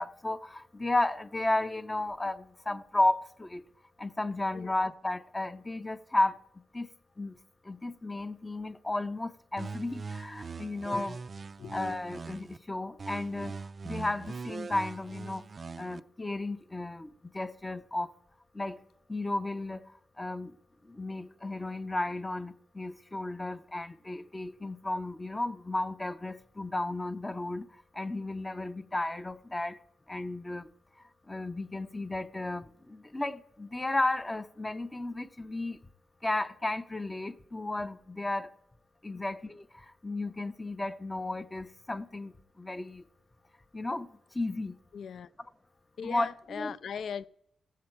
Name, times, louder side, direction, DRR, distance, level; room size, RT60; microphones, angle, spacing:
voice 1, 0.0-3.6 4.0-6.3 6.7-6.9 7.2-7.3 7.7-11.2 11.7-13.5 13.8-15.4 15.8-18.1 18.5-18.8 19.1-19.8 20.2-20.5 20.9-27.7 28.0-29.8 30.1-30.7 31.3-35.8 36.2-38.5 39.0-39.6 40.0-42.3 42.6-43.0 43.7-44.1 44.3-44.8 46.0-46.3 46.6-46.7, left 2 dB, 15° left, 0.5 m, -33 dB
sound 1, 9.6-12.6 13.0-16.0, right 4 dB, 40° right, 0.3 m, -41 dB
voice 2, 44.9-45.3 46.0-47.3, left 7 dB, 70° left, 0.4 m, -39 dB
16.0 x 7.5 x 4.5 m
cardioid pair, 105°, 0 cm